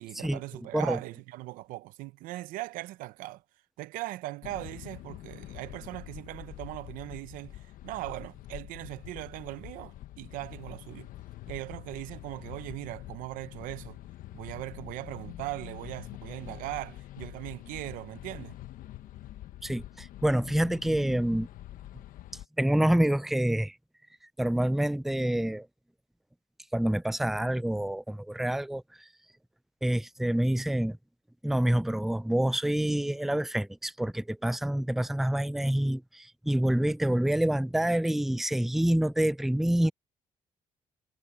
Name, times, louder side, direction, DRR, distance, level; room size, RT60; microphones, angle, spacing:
voice 1, 0.0-3.4 3.8-11.1 11.5-14.0 14.3-18.6, right 18 dB, 90° right, 0.7 m, -39 dB
sound 1, 4.4-22.5, left 14 dB, 80° left, 1.1 m, -45 dB
voice 2, 19.6-21.5 22.6-23.7 24.4-25.7 26.7-28.8 29.8-31.0 31.4-39.9, right 1 dB, ahead, 0.4 m, -27 dB
supercardioid pair, 65°, 14 cm